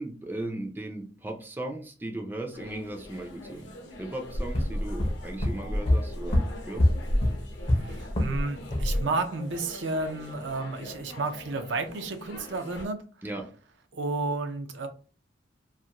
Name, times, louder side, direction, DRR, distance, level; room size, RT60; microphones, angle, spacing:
voice 1, 0.0-6.9 13.2-13.5, right 1 dB, 10° right, 3 dB, 0.4 m, -37 dB
sound 1, 2.5-12.9, left 2 dB, 65° left, 0.8 m, -44 dB
sound 2, 4.3-8.4 8.7-9.0, left 1 dB, 35° left, 0.6 m, -25 dB
voice 2, 7.7-13.0 13.9-14.9, right 3 dB, 75° right, 7 dB, 0.5 m, -32 dB
2.5 x 2.4 x 2.9 m, 0.38 s
head